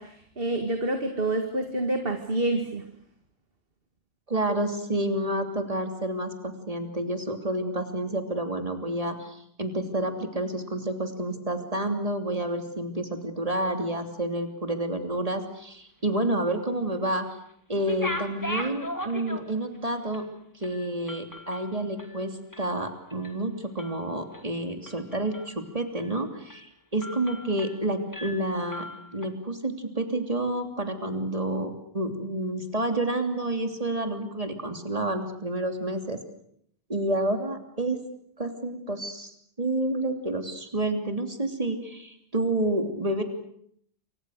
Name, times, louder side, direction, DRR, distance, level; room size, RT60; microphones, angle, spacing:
voice 1, 0.0-2.8, right 1 dB, 50° right, 5 dB, 2.2 m, -28 dB
voice 2, 4.3-17.3 17.7-20.2 20.6-26.7 26.9-28.8 29.1-36.2 36.9-38.0 38.4-39.3 39.6-43.2, right 1 dB, 30° right, 5 dB, 3.2 m, -29 dB
sound 1, 17.7-19.8 20.1-20.3 20.6-22.8 23.1-23.4 23.8-24.4 24.9-25.6 26.0-26.1 26.5-26.7 27.0-27.8 28.1-29.3, left 1 dB, 15° left, 2.6 m, -38 dB
28.0 x 25.5 x 6.6 m, 0.68 s
omnidirectional pair, 1.2 m